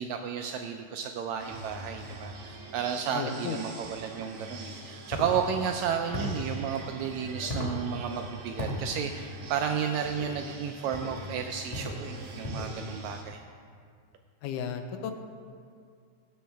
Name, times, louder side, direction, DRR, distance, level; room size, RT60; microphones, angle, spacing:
voice 1, 0.0-13.4, right 7 dB, 80° right, 5 dB, 1.6 m, -32 dB
sound 1, 1.4-13.2, right 2 dB, 60° right, 1.8 m, -44 dB
voice 2, 3.1-3.6 14.4-15.1, left 8 dB, 85° left, 6 dB, 2.2 m, -34 dB
sound 2, 5.1-5.3 6.1-6.4 7.5-7.8 8.6-8.8 10.0-10.3 10.9-11.2 11.7-12.0 12.4-12.8, left 1 dB, 60° left, 0.4 m, -34 dB
18.5 x 7.8 x 3.4 m, 2.2 s
omnidirectional pair, 3.7 m